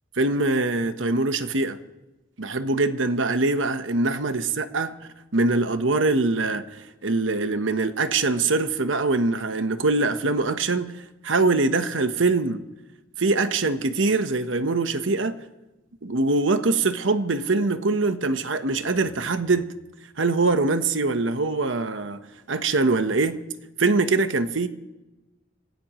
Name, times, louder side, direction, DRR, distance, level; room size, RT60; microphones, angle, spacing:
voice 1, 0.2-1.8 2.4-4.9 5.3-6.6 7.0-10.9 11.2-12.6 13.2-15.4 16.0-19.7 20.2-22.2 22.5-23.4 23.8-24.7, right 3 dB, 85° right, 1.1 m, -23 dB
27.0 x 17.0 x 3.1 m
head